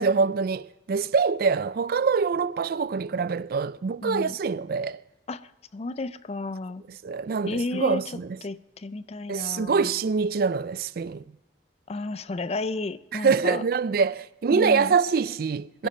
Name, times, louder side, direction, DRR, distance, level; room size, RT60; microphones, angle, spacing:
voice 1, 0.0-5.0 6.9-8.4 9.3-11.2 13.1-15.9, right 5 dB, 55° right, 0.4 m, -25 dB
voice 2, 4.0-4.4 5.3-6.8 7.5-8.0 8.4-9.9 11.9-13.6 14.5-14.9, left 3 dB, 35° left, 0.5 m, -32 dB
21.5 x 10.5 x 4.4 m
head